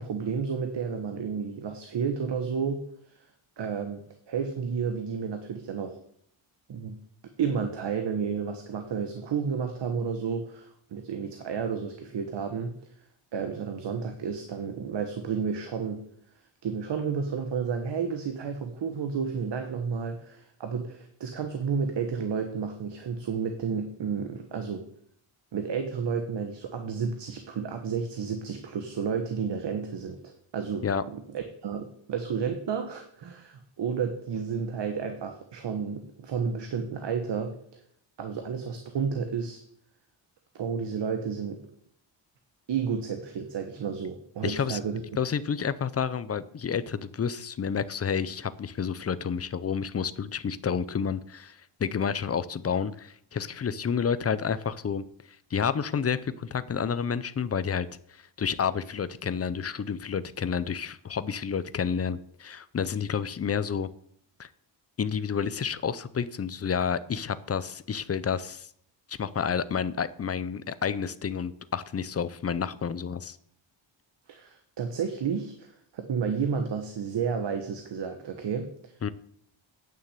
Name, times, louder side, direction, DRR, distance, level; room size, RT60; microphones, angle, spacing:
voice 1, 0.0-3.3 3.6-4.0 4.3-6.0 6.7-7.0 7.4-12.7 13.3-16.0 16.6-24.8 25.5-37.5 38.2-39.6 40.5-41.6 42.7-45.0 74.3-78.9, right 6 dB, 55° right, 6 dB, 1.2 m, -31 dB
voice 2, 44.4-44.8 45.2-55.0 55.5-63.9 64.4-64.5 65.0-68.7 69.1-73.4 79.0-79.1, left 7 dB, 30° left, 15 dB, 0.5 m, -30 dB
9.1 x 6.4 x 8.2 m, 0.66 s
wide cardioid pair, 165°, 50 cm